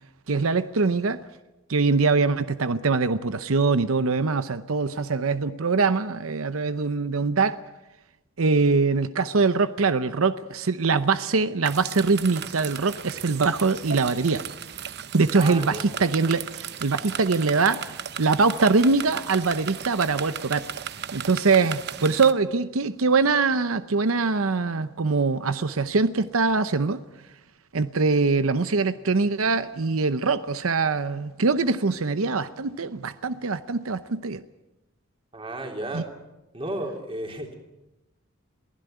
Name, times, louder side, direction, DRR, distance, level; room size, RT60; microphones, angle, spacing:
voice 1, 0.3-1.2 1.7-7.6 8.4-14.4 15.1-17.8 18.2-20.6 21.1-27.0 27.7-34.4 35.9-36.0, right 4 dB, 90° right, 12 dB, 0.8 m, -23 dB
sound 1, 11.6-22.3, right 8 dB, 50° right, 0.9 m, -36 dB
voice 2, 15.3-15.9 35.3-36.1 36.5-37.5, right 1 dB, 25° right, 2 dB, 3.5 m, -33 dB
23.0 x 16.0 x 9.3 m, 1.0 s
head